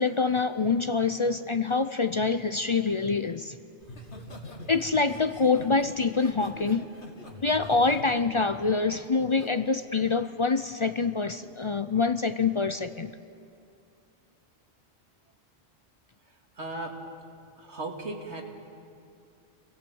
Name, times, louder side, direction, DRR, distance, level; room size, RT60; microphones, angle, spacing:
voice 1, 0.0-3.6 4.7-6.9 7.4-13.1, left 4 dB, 40° left, 11 dB, 0.4 m, -26 dB
Laughter, 3.8-9.5 9.9-10.2, left 2 dB, 90° left, 2.6 m, -44 dB
voice 2, 16.6-17.0 17.6-18.4, right 2 dB, 80° right, 2 dB, 2.5 m, -36 dB
27.0 x 18.0 x 7.9 m, 2.6 s
omnidirectional pair, 1.1 m